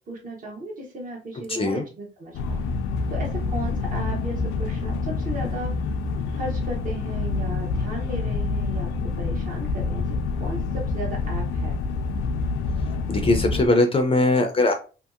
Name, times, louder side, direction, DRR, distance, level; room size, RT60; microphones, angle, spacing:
voice 1, 0.1-2.6 3.1-5.7 6.3-8.9 9.2-10.1 10.4-11.8, right 1 dB, 45° right, -2 dB, 0.8 m, -35 dB
voice 2, 1.5-1.8 13.1-14.7, left 2 dB, 30° left, 6 dB, 0.4 m, -20 dB
sound 1, 2.3-13.7, left 4 dB, 90° left, 0.4 m, -27 dB
2.7 x 2.7 x 2.4 m, 0.34 s
cardioid pair, 90°, 20 cm